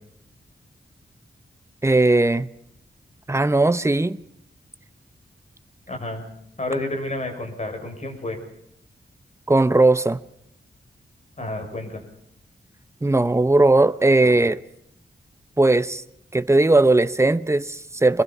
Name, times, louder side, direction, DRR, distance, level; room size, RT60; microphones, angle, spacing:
voice 1, 1.8-2.5 3.3-4.2 9.5-10.2 13.0-14.6 15.6-16.0 16.3-18.2, right 2 dB, 15° right, 1.0 m, -18 dB
voice 2, 5.9-6.2 6.6-8.4 11.4-12.0, left 2 dB, 40° left, 6.5 m, -30 dB
26.0 x 21.0 x 5.6 m
wide cardioid pair, 95°, 18 cm